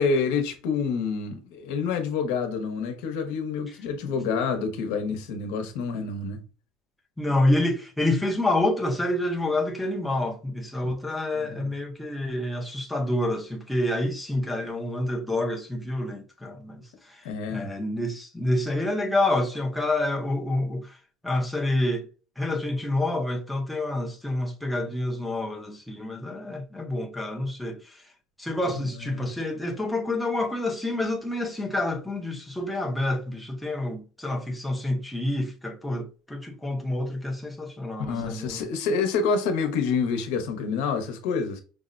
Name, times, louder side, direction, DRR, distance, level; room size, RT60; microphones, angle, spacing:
voice 1, 0.0-6.4 10.8-10.9 11.4-11.7 17.2-17.7 29.1-29.3 38.1-41.6, left 5 dB, 80° left, 0.9 m, -27 dB
voice 2, 7.2-21.0 21.2-22.1 22.4-28.1 28.4-38.6, left 1 dB, ahead, 0.5 m, -28 dB
5.1 x 2.1 x 2.5 m
cardioid pair, 175°, 0 cm